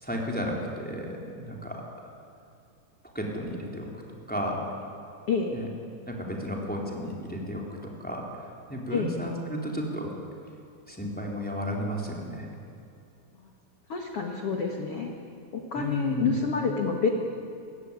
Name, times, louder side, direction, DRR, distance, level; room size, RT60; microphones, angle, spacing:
voice 1, 0.0-1.8 3.1-3.9 4.3-4.8 5.5-5.7 6.1-8.3 8.7-10.1 10.9-12.5 15.7-16.3, equal, ahead, -1 dB, 2.7 m, -33 dB
voice 2, 5.3-5.6 8.9-9.2 13.9-15.1 15.5-17.1, left 5 dB, 85° left, 2 dB, 1.2 m, -28 dB
28.0 x 15.5 x 9.9 m, 2.6 s
omnidirectional pair, 5.4 m